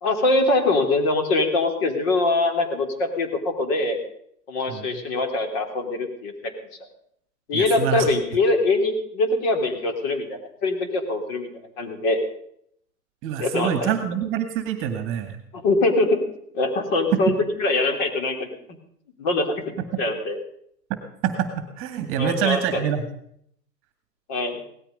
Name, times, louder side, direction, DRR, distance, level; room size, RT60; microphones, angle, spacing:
voice 1, 0.0-4.0 4.5-6.5 7.5-11.5 11.8-12.2 13.4-13.9 15.5-16.2 16.5-18.6 19.2-19.6 20.0-20.4 22.2-22.9 24.3-24.6, left 2 dB, 35° left, 5 dB, 3.5 m, -23 dB
voice 2, 7.5-8.1 13.2-15.4 21.2-21.5 21.8-23.0, right 9 dB, 25° right, 8 dB, 2.0 m, -26 dB
18.0 x 13.0 x 5.4 m, 0.68 s
hypercardioid pair, 135°, 50 cm